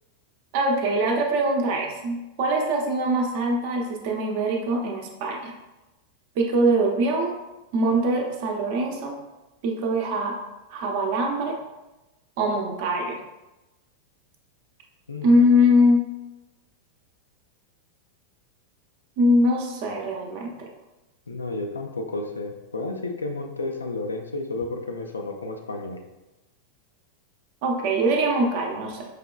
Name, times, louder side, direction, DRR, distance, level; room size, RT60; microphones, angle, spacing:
voice 1, 0.5-5.5 6.4-7.3 7.7-9.2 9.6-10.4 10.7-11.6 12.4-13.2 15.2-16.0 19.2-20.7 27.6-29.1, equal, 50° right, 0 dB, 0.7 m, -22 dB
voice 2, 15.1-15.4 21.3-26.0, left 2 dB, 75° left, 3 dB, 0.4 m, -32 dB
4.8 x 2.9 x 2.3 m, 1.0 s
figure-of-eight pair, 90°, 0 cm